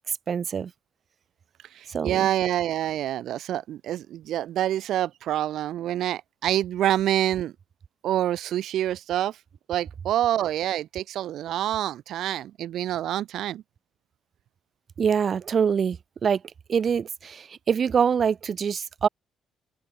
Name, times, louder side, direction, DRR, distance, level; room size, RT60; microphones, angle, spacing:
voice 1, 0.3-0.7 1.9-2.3 15.0-16.4 16.7-19.1, right 7 dB, 50° right, 1.0 m, -24 dB
voice 2, 1.7-7.5 8.0-9.4 9.7-13.6, right 12 dB, 80° right, 0.5 m, -27 dB
open air
cardioid pair, 90°, 0 cm